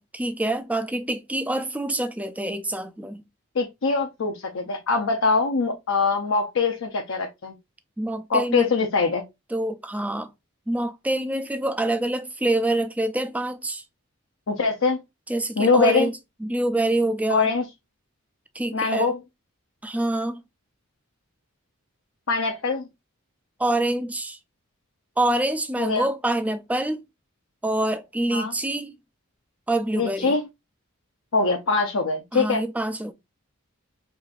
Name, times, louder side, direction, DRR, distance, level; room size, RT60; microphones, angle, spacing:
voice 1, 0.0-3.2 8.0-8.7 9.5-10.3 10.7-13.8 15.3-16.1 16.4-17.5 18.5-19.1 19.8-20.4 23.6-24.4 25.2-27.0 27.6-28.9 29.7-30.4 32.3-33.1, right 1 dB, 5° right, 0.3 m, -26 dB
voice 2, 3.5-7.5 8.3-9.2 14.5-15.0 15.6-16.1 17.3-17.6 18.7-19.2 22.3-22.9 25.8-26.1 28.3-28.5 29.9-30.4 31.3-32.7, left 4 dB, 65° left, 0.6 m, -23 dB
4.8 x 2.5 x 2.4 m
head